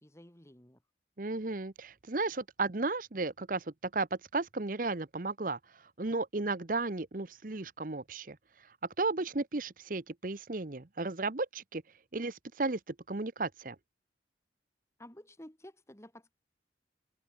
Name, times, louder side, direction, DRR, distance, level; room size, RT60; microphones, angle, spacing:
voice 1, 0.0-0.8 15.0-16.3, left 1 dB, 15° left, 2.0 m, -52 dB
voice 2, 1.2-5.6 6.0-8.4 9.0-11.8 12.1-13.8, right 3 dB, 50° right, 0.9 m, -34 dB
head